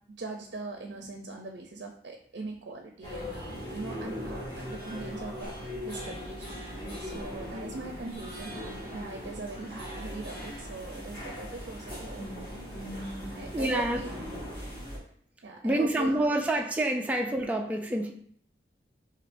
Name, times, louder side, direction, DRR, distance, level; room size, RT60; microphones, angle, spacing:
voice 1, 0.1-14.1 15.4-16.3, right 3 dB, 75° right, 2 dB, 0.5 m, -41 dB
sound 1, 3.0-15.0, equal, 25° left, 1.5 m, -39 dB
voice 2, 13.5-14.0 14.8-14.9 15.6-18.1, right 1 dB, 10° right, 1 dB, 0.3 m, -27 dB
6.0 x 2.8 x 2.6 m, 0.63 s
head